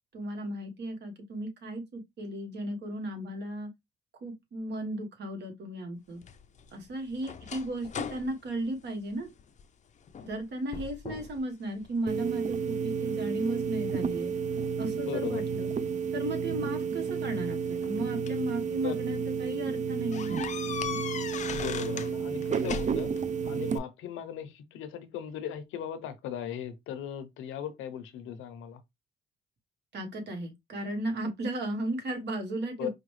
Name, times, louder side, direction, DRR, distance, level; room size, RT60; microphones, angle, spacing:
voice 1, 0.1-3.7 4.2-6.2 6.7-9.3 10.2-14.3 14.8-15.7 16.1-20.3 29.9-32.9, right 1 dB, 60° right, 1.3 m, -35 dB
sound 1, 6.2-9.7 10.1-10.4 10.7-11.4 11.8-12.6 13.2-14.6 15.8-15.9 17.1-18.5 19.0-19.2 19.5-19.6 20.1-22.1 22.4-23.2, left 7 dB, 35° left, 0.5 m, -39 dB
sound 2, 12.1-23.8, right 6 dB, 40° right, 0.5 m, -31 dB
voice 2, 15.0-15.4 18.8-19.0 21.5-23.1 23.4-28.8 32.8-32.9, left 9 dB, 90° left, 0.7 m, -38 dB
4.9 x 2.2 x 3.2 m
cardioid pair, 90°, 20 cm